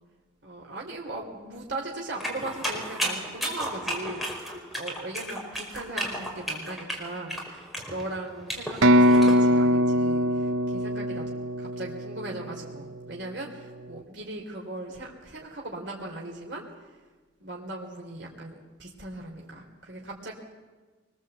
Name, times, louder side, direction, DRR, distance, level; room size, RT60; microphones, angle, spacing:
voice 1, 0.4-16.6 17.4-20.3, right 2 dB, 60° right, -1 dB, 3.3 m, -38 dB
sound 1, 2.2-9.4, equal, ahead, 4.9 m, -33 dB
sound 2, 8.8-12.6, equal, 85° right, 0.8 m, -22 dB
24.5 x 21.0 x 8.0 m, 1.3 s
head